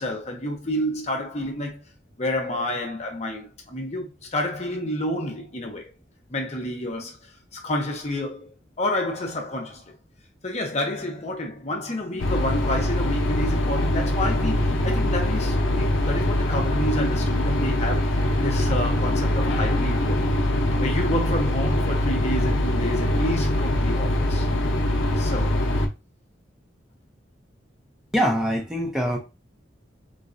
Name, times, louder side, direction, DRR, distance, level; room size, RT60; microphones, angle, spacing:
voice 1, 0.0-1.8 2.2-5.9 6.3-9.9 10.4-20.3 20.8-24.5 25.2-25.7, left 1 dB, 35° left, 0.7 m, -29 dB
sound 1, 12.2-25.9, left 1 dB, 90° left, 0.6 m, -23 dB
voice 2, 28.1-29.2, equal, 5° right, 0.6 m, -23 dB
3.9 x 2.2 x 2.4 m
head